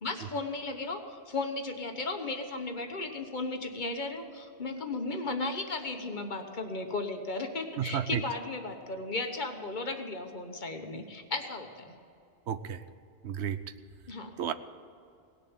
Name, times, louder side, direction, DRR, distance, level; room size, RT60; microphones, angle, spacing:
voice 1, 0.0-12.0 14.1-14.3, left 3 dB, 45° left, 5 dB, 1.3 m, -35 dB
voice 2, 7.8-8.2 12.5-12.8 13.2-13.6 14.4-14.5, right 9 dB, 85° right, 12 dB, 1.0 m, -32 dB
18.0 x 6.8 x 8.9 m, 2.4 s
omnidirectional pair, 1.1 m